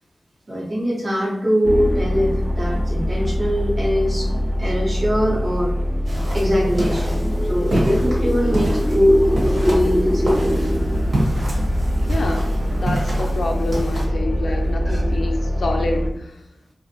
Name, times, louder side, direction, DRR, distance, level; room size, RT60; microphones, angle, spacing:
voice 1, 0.5-4.3 4.6-5.7 6.3-10.6 14.5-14.6 14.9-15.0, equal, 40° right, -5 dB, 0.7 m, -22 dB
sound 1, 1.6-16.1, equal, 10° right, 0.3 m, -22 dB
sound 2, 6.0-14.0, right 1 dB, 70° right, 1.1 m, -28 dB
voice 2, 12.1-16.4, left 2 dB, 75° left, 3 dB, 0.4 m, -27 dB
2.5 x 2.1 x 2.7 m, 0.81 s
wide cardioid pair, 70°, 0 cm